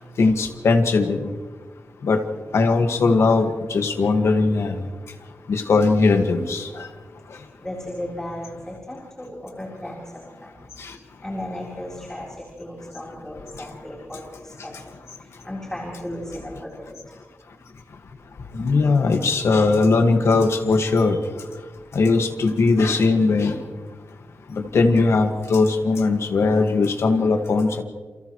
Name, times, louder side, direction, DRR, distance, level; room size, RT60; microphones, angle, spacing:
voice 1, 0.2-1.2 2.0-2.2 2.5-4.7 5.5-6.7 18.6-21.2 21.9-23.6 24.6-27.8, left 3 dB, 80° left, 5 dB, 1.8 m, -19 dB
voice 2, 7.6-10.6 11.0-14.7 15.2-16.9 24.7-24.8, left 1 dB, 10° left, -3 dB, 4.0 m, -35 dB
29.0 x 28.5 x 3.2 m, 1.5 s
wide cardioid pair, 140°, 5 cm